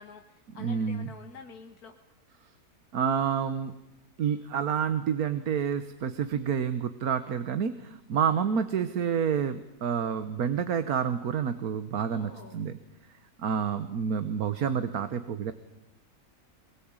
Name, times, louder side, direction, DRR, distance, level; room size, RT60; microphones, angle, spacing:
voice 1, 0.0-2.0 12.1-12.6, left 5 dB, 80° left, 5 dB, 1.9 m, -48 dB
voice 2, 0.6-1.1 2.9-3.7 4.2-12.8 13.4-15.5, right 7 dB, 75° right, 11 dB, 1.6 m, -29 dB
23.0 x 22.0 x 8.9 m, 0.91 s
omnidirectional pair, 1.6 m